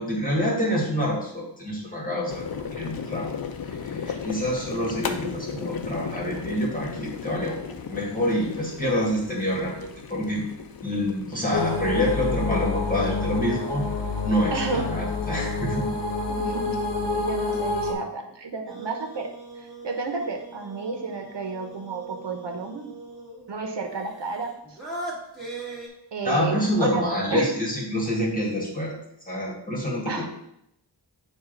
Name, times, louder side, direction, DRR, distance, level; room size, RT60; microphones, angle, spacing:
voice 1, 0.0-2.5 2.8-3.3 3.7-7.6 7.8-10.4 10.8-13.9 14.2-15.9 26.2-29.0 29.3-30.2, equal, 20° left, -3 dB, 1.9 m, -27 dB
sound 1, 2.3-16.8, left 6 dB, 55° left, 0.6 m, -37 dB
sound 2, 11.5-17.9, left 3 dB, 80° left, 0.9 m, -28 dB
voice 2, 14.5-14.8 16.3-19.3 19.6-22.9 23.5-24.8 26.1-27.6 30.1-30.3, right 4 dB, 75° right, 4 dB, 1.0 m, -32 dB
sound 3, 18.7-23.5 24.1-25.9, right 2 dB, ahead, 2.3 m, -40 dB
7.1 x 2.6 x 5.2 m, 0.78 s
wide cardioid pair, 70°, 42 cm